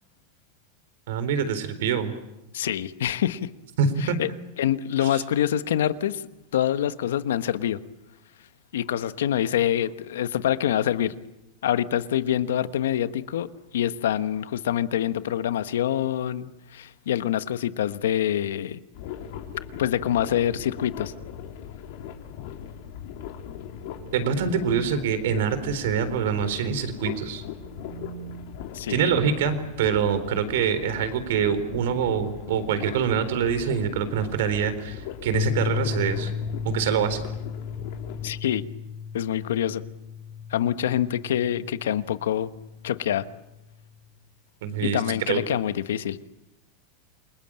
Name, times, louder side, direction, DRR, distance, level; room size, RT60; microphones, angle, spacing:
voice 1, 1.1-2.1 3.8-4.2 5.0-5.1 24.1-27.4 28.9-36.3 36.6-37.2 44.6-45.0 45.3-45.4, right 7 dB, 75° right, 11 dB, 3.9 m, -25 dB
voice 2, 2.5-3.5 4.0-4.3 4.6-6.2 6.5-7.8 8.7-11.1 11.6-13.5 13.7-18.8 19.8-21.1 28.7-29.1 38.2-38.7 39.1-39.8 40.5-42.5 42.8-43.2 44.8-46.2, left 11 dB, 85° left, 13 dB, 1.2 m, -25 dB
sound 1, 18.9-38.4, left 9 dB, 65° left, 3.7 m, -39 dB
sound 2, 23.2-25.0 27.1-28.8 30.8-33.2, right 9 dB, 60° right, 4.4 m, -48 dB
sound 3, 35.3-43.7, left 7 dB, 45° left, 4.0 m, -34 dB
28.5 x 21.0 x 8.9 m, 0.94 s
supercardioid pair, 125°, 0 cm